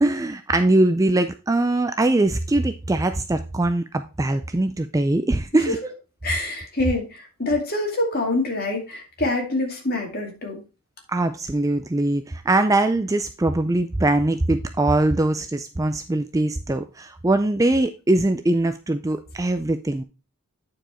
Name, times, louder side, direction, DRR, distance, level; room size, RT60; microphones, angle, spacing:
voice 1, 0.0-5.8 11.1-20.0, right 2 dB, 15° right, 9 dB, 0.3 m, -22 dB
voice 2, 6.2-10.6, left 2 dB, 45° left, 1 dB, 2.3 m, -25 dB
9.2 x 4.8 x 4.3 m, 0.31 s
head